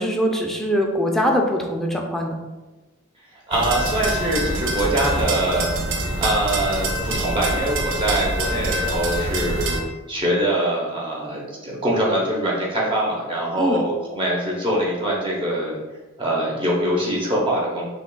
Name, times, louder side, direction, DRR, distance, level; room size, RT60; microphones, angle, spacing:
voice 1, 0.0-2.4 13.6-13.8, equal, ahead, 0 dB, 0.4 m, -22 dB
voice 2, 3.5-5.7 6.2-9.8 10.1-15.8 16.2-17.9, right 1 dB, 25° right, -4 dB, 0.7 m, -23 dB
sound 1, 3.5-9.8, right 1 dB, 65° right, 0.5 m, -25 dB
5.9 x 2.3 x 2.2 m, 1.2 s
head